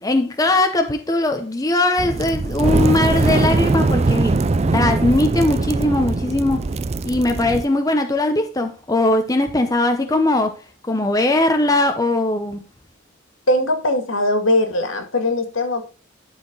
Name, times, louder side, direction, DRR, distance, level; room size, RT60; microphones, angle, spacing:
voice 1, 0.0-4.4 4.7-6.6 7.0-12.6, left 2 dB, 20° left, 0.8 m, -20 dB
sound 1, 2.0-7.6, right 3 dB, 30° right, 0.4 m, -20 dB
voice 2, 13.5-15.8, left 1 dB, 80° left, 2.2 m, -20 dB
12.0 x 4.5 x 3.9 m
head